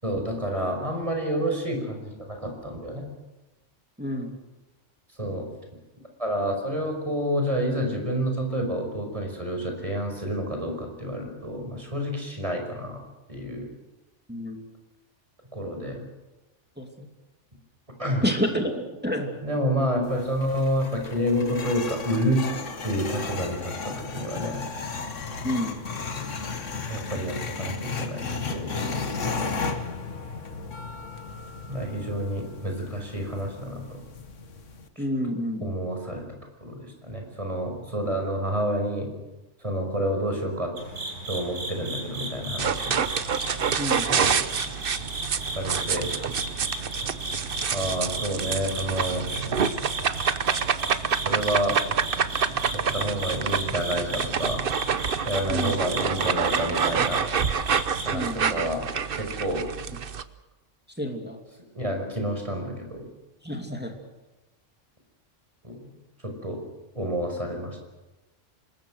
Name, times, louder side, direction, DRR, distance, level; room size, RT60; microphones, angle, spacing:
voice 1, 0.0-3.0 5.2-5.5 6.2-13.0 13.3-13.7 15.5-16.1 18.0-18.2 19.4-22.4 22.8-24.6 26.9-29.4 31.7-34.0 35.6-36.3 36.6-39.1 39.6-40.7 41.3-43.0 44.1-44.3 45.6-46.1 47.7-49.3 51.2-51.8 52.7-54.6 55.2-57.3 58.0-58.8 59.1-59.7 61.8-63.0 65.6-65.9 66.2-66.6 67.0-67.8, equal, 25° right, 3 dB, 5.5 m, -29 dB
voice 2, 4.0-4.3 14.3-14.6 16.8-17.1 18.2-19.3 25.4-25.8 35.0-35.8 43.8-44.1 55.5-55.8 58.1-58.6 61.0-61.4 63.4-64.0, equal, 10° right, 3 dB, 2.6 m, -29 dB
sound 1, 20.0-34.9, left 4 dB, 80° left, 1.7 m, -34 dB
sound 2, 40.8-58.1, right 2 dB, 80° right, 5.1 m, -35 dB
sound 3, 42.6-60.2, right 7 dB, 50° right, 1.0 m, -27 dB
26.5 x 20.5 x 6.4 m, 1.1 s
omnidirectional pair, 1.3 m